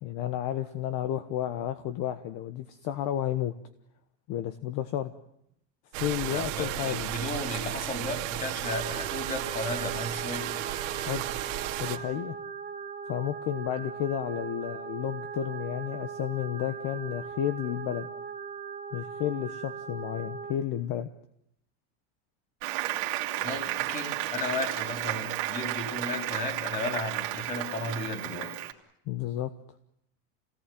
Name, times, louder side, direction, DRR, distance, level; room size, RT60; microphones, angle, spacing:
voice 1, 0.0-3.5 4.3-5.1 5.9-7.1 11.0-11.2 11.8-12.4 13.1-18.1 18.9-21.1 29.1-29.5, left 11 dB, 50° left, 10 dB, 1.3 m, -32 dB
sound 1, 5.9-12.0, right 16 dB, 80° right, 2.5 m, -34 dB
voice 2, 6.3-10.7 23.4-28.5, left 2 dB, 20° left, 5 dB, 4.1 m, -34 dB
sound 2, 8.6-20.5, right 6 dB, 20° right, 1.2 m, -39 dB
Applause, 22.6-28.7, right 17 dB, 60° right, 2.6 m, -33 dB
27.5 x 18.5 x 9.3 m, 0.78 s
cardioid pair, 160°, 38 cm